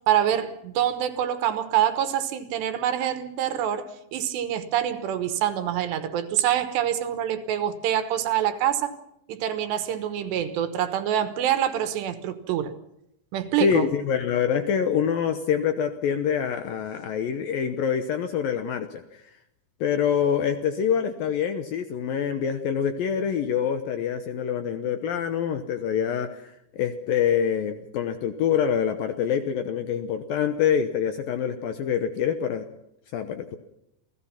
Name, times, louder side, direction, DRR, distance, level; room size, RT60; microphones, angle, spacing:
voice 1, 0.1-8.9 9.3-12.7 13.3-13.9, right 10 dB, 75° right, 3.3 m, -25 dB
voice 2, 13.6-19.2 19.8-26.4 26.7-32.6 33.1-33.6, left 8 dB, 75° left, 2.3 m, -25 dB
28.0 x 17.0 x 5.9 m
omnidirectional pair, 5.2 m